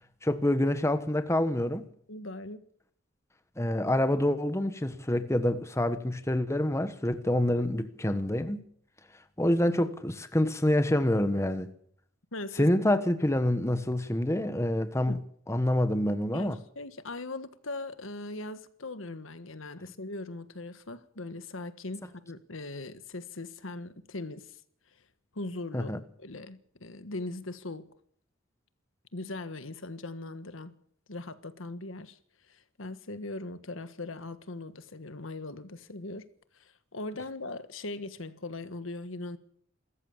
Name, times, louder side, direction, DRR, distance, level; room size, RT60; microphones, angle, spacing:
voice 1, 0.2-1.9 3.6-8.6 9.4-11.7 12.5-16.6 25.7-26.0, left 1 dB, 15° left, 1.2 m, -27 dB
voice 2, 2.1-2.6 12.3-12.7 15.1-15.2 16.3-24.6 25.3-25.9 26.2-27.9 29.1-30.8 31.1-32.2 32.4-36.3 36.5-39.4, left 2 dB, 80° left, 1.5 m, -40 dB
27.0 x 14.5 x 7.3 m
head